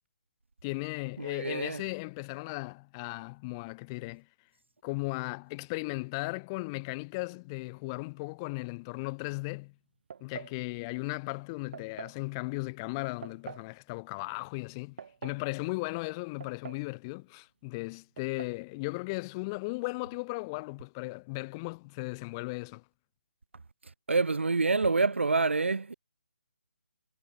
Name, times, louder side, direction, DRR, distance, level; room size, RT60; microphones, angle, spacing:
voice 1, 0.6-4.2 4.8-9.7 10.2-15.0 15.2-22.8, left 26 dB, 20° left, 5.3 m, -36 dB
voice 2, 1.2-1.8 24.1-25.9, right 3 dB, 85° right, 1.6 m, -27 dB
sound 1, 10.1-10.6 11.7-12.2 13.2-13.7 14.7-15.5 16.4-16.9 17.2-17.3 18.2-18.6, right 6 dB, 55° right, 2.3 m, -45 dB
hypercardioid pair, 155°, 6 cm